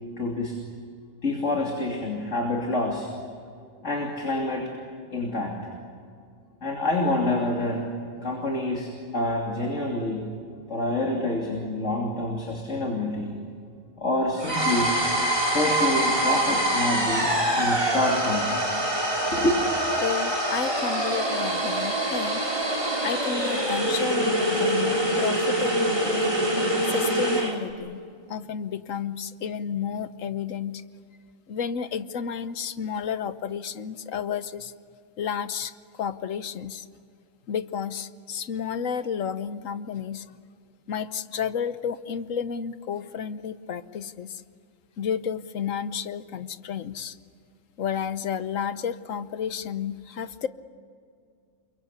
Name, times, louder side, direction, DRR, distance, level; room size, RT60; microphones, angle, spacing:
voice 1, 0.2-0.6 1.2-3.1 3.8-4.7 5.1-5.6 6.6-7.9 8.2-10.3 10.7-13.4 14.0-15.0 15.5-18.5 19.1-19.8, left 1 dB, 70° left, 0 dB, 3.4 m, -27 dB
sound 1, 14.4-27.6, right 1 dB, 25° right, 3.7 m, -25 dB
voice 2, 20.0-22.4 23.0-26.4 26.9-28.0 28.3-30.8 31.5-34.7 35.2-35.7 36.0-36.8 37.5-40.2 40.9-44.4 45.0-47.2 47.8-50.5, left 7 dB, 85° left, 13 dB, 1.3 m, -31 dB
28.5 x 24.0 x 8.4 m, 2.3 s
omnidirectional pair, 1.3 m